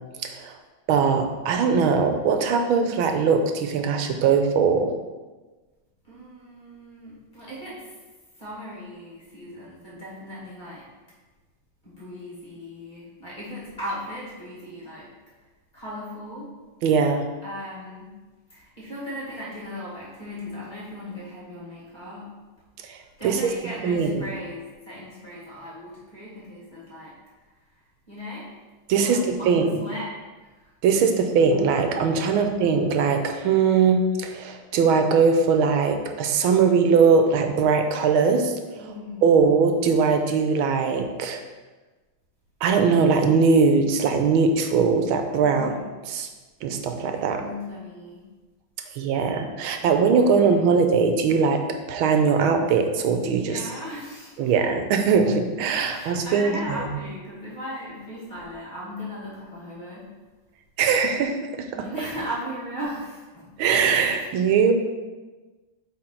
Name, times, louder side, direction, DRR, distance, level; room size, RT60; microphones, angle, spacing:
voice 1, 0.2-0.6 0.9-4.9 16.8-17.3 22.8-23.5 23.8-24.2 28.9-29.8 30.8-38.9 39.2-41.4 42.6-45.8 46.0-46.3 46.6-47.4 48.9-51.6 51.9-53.7 54.4-56.9 60.8-61.4 61.8-61.9 63.6-64.7, right 5 dB, 90° right, 6 dB, 1.5 m, -21 dB
voice 2, 6.0-7.9 8.4-10.8 11.8-15.1 15.7-16.5 17.4-18.2 18.5-22.3 23.2-27.1 28.1-28.5 29.0-30.1 30.4-30.7 32.3-32.4 38.8-39.3 45.4-45.9 47.1-48.3 49.8-50.0 50.5-50.7 53.4-54.5 55.9-60.1 61.7-63.5, equal, 20° left, -7 dB, 2.4 m, -37 dB
7.8 x 4.0 x 4.4 m, 1.3 s
omnidirectional pair, 2.2 m